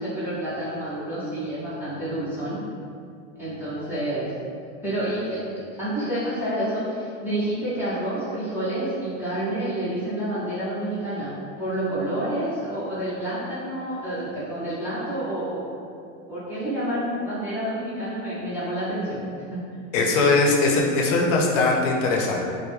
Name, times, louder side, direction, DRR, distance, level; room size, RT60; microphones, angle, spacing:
voice 1, 0.0-2.6 3.4-4.3 4.8-15.6 16.3-19.2 19.5-19.6, right 1 dB, 5° right, -13 dB, 0.4 m, -29 dB
voice 2, 19.9-22.5, left 3 dB, 75° left, -1 dB, 0.6 m, -20 dB
2.2 x 2.0 x 3.0 m, 2.4 s
supercardioid pair, 145°, 38 cm